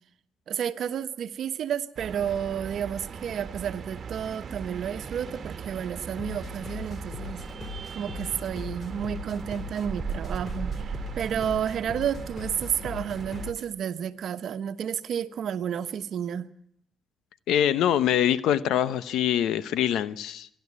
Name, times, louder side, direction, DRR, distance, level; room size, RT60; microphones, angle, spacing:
voice 1, 0.5-7.4 7.9-16.5, right 8 dB, 65° right, 10 dB, 1.1 m, -31 dB
sound 1, 2.0-13.5, right 6 dB, 50° right, 1.5 m, -38 dB
sound 2, 6.2-13.7, left 5 dB, 45° left, 2.6 m, -40 dB
voice 2, 17.5-20.5, left 10 dB, 85° left, 16 dB, 0.8 m, -24 dB
25.5 x 12.0 x 9.7 m, 0.73 s
cardioid pair, 90°, 0 cm